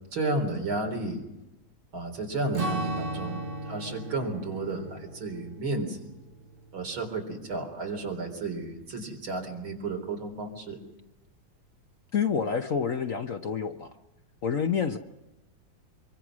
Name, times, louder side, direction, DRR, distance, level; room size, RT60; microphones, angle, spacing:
voice 1, 0.1-1.2 1.9-6.0 6.7-10.8, right 2 dB, 80° right, 3 dB, 4.8 m, -32 dB
Strum, 2.5-7.2, right 2 dB, 30° right, 1.2 m, -36 dB
voice 2, 12.1-13.9 14.4-15.0, left 6 dB, 50° left, 7 dB, 1.1 m, -28 dB
24.5 x 24.0 x 6.2 m, 0.98 s
omnidirectional pair, 2.2 m